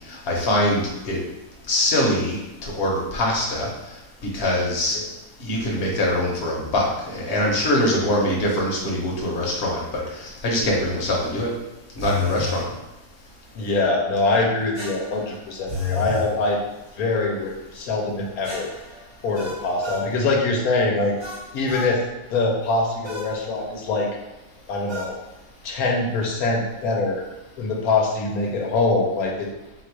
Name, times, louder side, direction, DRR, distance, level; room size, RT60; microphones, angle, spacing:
voice 1, 0.1-1.2 1.7-4.0 4.3-5.0 5.4-11.5 12.0-12.6, left 1 dB, 45° left, -3 dB, 1.1 m, -23 dB
sound 1, 12.0-12.6 14.7-16.3 18.4-20.1 21.2-21.9 23.0-23.3 24.9-25.2, left 4 dB, 25° right, 0.7 m, -31 dB
voice 2, 13.5-16.6 17.0-18.7 19.2-21.1 21.5-22.0 22.3-24.1 24.7-25.1 25.6-27.2 27.6-29.5, left 3 dB, 85° left, 0 dB, 1.2 m, -23 dB
4.0 x 2.4 x 4.6 m, 1.0 s
omnidirectional pair, 1.5 m